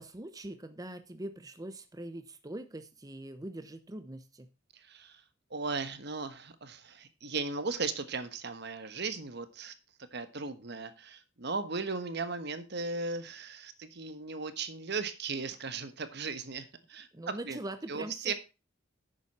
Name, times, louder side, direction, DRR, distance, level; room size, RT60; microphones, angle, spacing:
voice 1, 0.0-4.5 17.1-18.3, right 1 dB, 20° right, 9 dB, 0.8 m, -42 dB
voice 2, 4.7-5.2 5.5-9.7 10.1-17.6 17.9-18.3, right 4 dB, 55° right, 11 dB, 1.3 m, -37 dB
11.0 x 8.3 x 4.3 m, 0.31 s
head